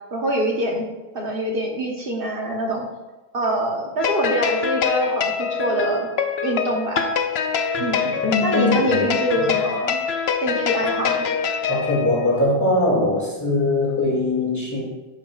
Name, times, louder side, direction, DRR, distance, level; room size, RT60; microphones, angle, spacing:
voice 1, 0.1-0.8 1.1-2.9 3.3-6.1 6.4-7.1 7.8-8.1 8.4-10.0 10.4-11.3, right 1 dB, 60° right, -1 dB, 1.3 m, -24 dB
sound 1, 4.0-12.4, left 6 dB, 80° left, 0.9 m, -24 dB
voice 2, 8.2-9.1 11.7-14.8, left 2 dB, 15° left, -4 dB, 2.2 m, -21 dB
10.5 x 8.2 x 2.4 m, 1.1 s
omnidirectional pair, 1.1 m